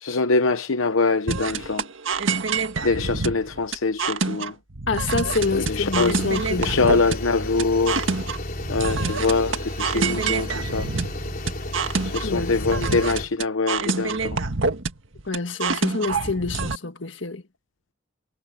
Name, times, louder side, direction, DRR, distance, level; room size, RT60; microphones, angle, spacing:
voice 1, 0.0-1.9 2.8-4.6 5.5-6.1 6.6-8.0 8.7-10.9 12.0-14.4, left 3 dB, 90° left, 0.9 m, -24 dB
sound 1, 1.3-16.8, right 4 dB, 75° right, 1.7 m, -27 dB
voice 2, 4.9-7.0 12.2-12.5 15.3-17.4, left 3 dB, 65° left, 1.8 m, -27 dB
sound 2, 5.2-13.2, left 1 dB, 45° left, 3.5 m, -32 dB
head